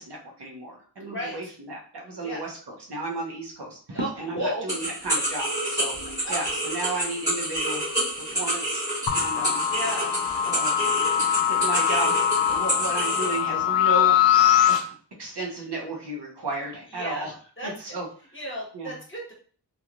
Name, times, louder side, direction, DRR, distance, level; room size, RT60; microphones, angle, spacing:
voice 1, 0.0-6.0 6.3-7.8 8.2-8.8 9.1-9.7 10.4-10.8 11.2-14.2 14.7-14.9 15.2-17.3 17.6-18.1 18.7-19.0, right 2 dB, 70° right, 0 dB, 0.8 m, -33 dB
voice 2, 1.1-1.5 2.2-2.4 3.9-4.9 6.2-6.3 9.7-10.1 16.9-17.3 17.6-17.7 18.3-19.3, equal, 30° left, -4 dB, 1.3 m, -33 dB
sound 1, 4.7-13.4, right 1 dB, 10° right, 1.4 m, -29 dB
sound 2, 9.1-14.8, left 10 dB, 85° left, 0.5 m, -22 dB
3.0 x 2.3 x 2.5 m, 0.43 s
wide cardioid pair, 45°, 42 cm